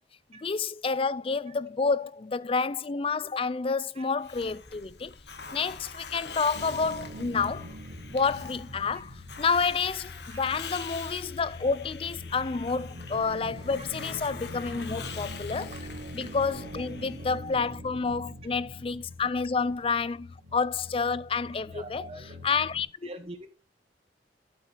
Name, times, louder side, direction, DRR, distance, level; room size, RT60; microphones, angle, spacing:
voice 1, 0.4-5.1 5.5-7.7 8.1-15.7 16.1-22.0 22.4-23.1, left 5 dB, 30° left, 0.4 m, -29 dB
Hiss, 4.2-17.7, left 5 dB, 70° left, 1.4 m, -44 dB
sound 1, 6.5-22.8, left 1 dB, 75° right, 2.2 m, -43 dB
voice 2, 21.7-22.4 23.0-23.5, right 1 dB, 35° right, 1.2 m, -44 dB
11.5 x 8.3 x 3.4 m
head